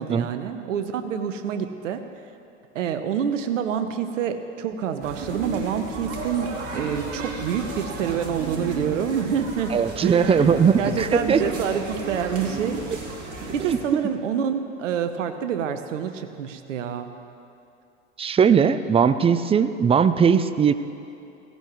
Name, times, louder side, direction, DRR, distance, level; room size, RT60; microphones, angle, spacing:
voice 1, 0.0-2.0 2.7-10.5 10.8-12.8 13.5-17.1, right 8 dB, 75° right, 9 dB, 1.0 m, -27 dB
sound 1, 5.0-13.8, right 2 dB, 40° right, 2.7 m, -33 dB
voice 2, 9.7-11.4 13.6-13.8 18.2-20.7, right 7 dB, 15° right, 13 dB, 0.4 m, -19 dB
17.0 x 16.0 x 3.1 m, 2.8 s
hypercardioid pair, 85°, 37 cm